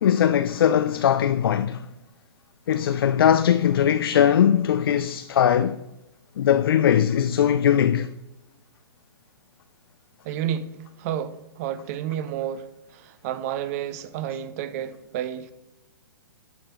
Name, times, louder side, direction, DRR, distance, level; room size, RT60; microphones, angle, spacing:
voice 1, 0.0-1.8 2.7-5.8 6.4-8.1, left 9 dB, 60° left, 0.4 m, -20 dB
voice 2, 10.2-15.5, right 10 dB, 40° right, 0.6 m, -31 dB
11.5 x 4.4 x 3.1 m
figure-of-eight pair, 120°, 13 cm